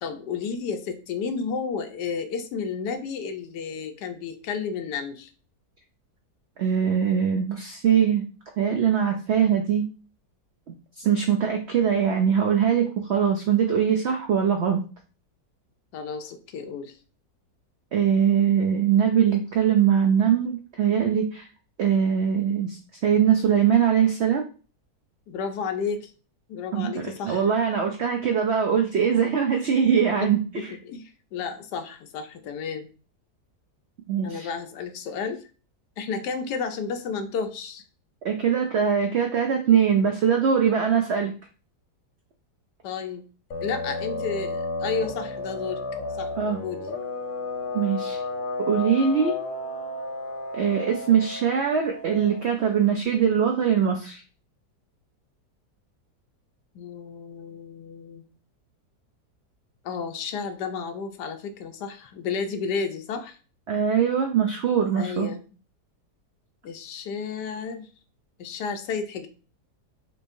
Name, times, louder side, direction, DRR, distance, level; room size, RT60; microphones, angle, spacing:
voice 1, 0.0-5.3 15.9-16.9 25.3-26.1 26.5-27.5 30.2-30.3 30.8-31.0 31.3-32.9 34.2-35.5 36.0-37.8 42.8-43.2 43.6-45.8 46.2-46.3 46.6-46.8 56.7-58.2 59.8-63.4 65.0-65.4 66.6-67.9 68.4-69.3, left 5 dB, 90° left, 7 dB, 1.2 m, -32 dB
voice 2, 6.6-8.2 8.6-9.9 10.7-14.8 17.9-21.5 21.8-24.4 26.7-30.7 34.1-34.5 38.2-41.3 46.4-46.6 47.7-48.2 48.6-49.4 50.5-54.2 63.7-65.3, right 8 dB, 80° right, 2 dB, 0.6 m, -22 dB
sound 1, 43.5-52.8, left 2 dB, 65° left, 0.9 m, -33 dB
4.4 x 3.1 x 2.6 m, 0.37 s
omnidirectional pair, 1.7 m